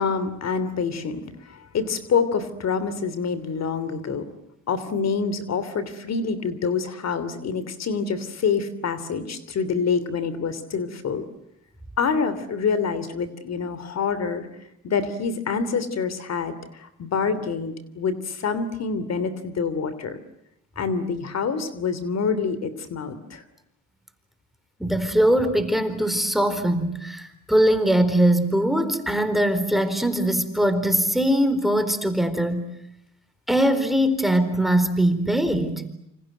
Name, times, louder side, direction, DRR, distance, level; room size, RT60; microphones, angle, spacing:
voice 1, 0.0-4.2 4.7-11.2 12.0-14.5 14.8-20.2 20.8-23.4, left 5 dB, 60° left, 13 dB, 3.1 m, -26 dB
voice 2, 24.8-32.7 33.5-35.8, right 1 dB, ahead, 11 dB, 4.2 m, -21 dB
28.5 x 26.5 x 7.9 m, 0.80 s
cardioid pair, 90°, 30 cm